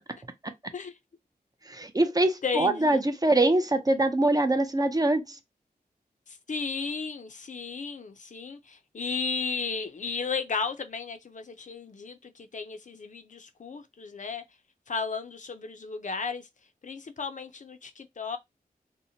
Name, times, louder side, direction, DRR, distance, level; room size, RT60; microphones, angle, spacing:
voice 1, 1.7-5.4, right 2 dB, 25° right, 0.4 m, -24 dB
voice 2, 2.4-3.0 6.3-14.4 14.9-16.5 16.8-18.4, left 5 dB, 50° left, 0.4 m, -34 dB
2.8 x 2.1 x 2.7 m
wide cardioid pair, 95°, 16 cm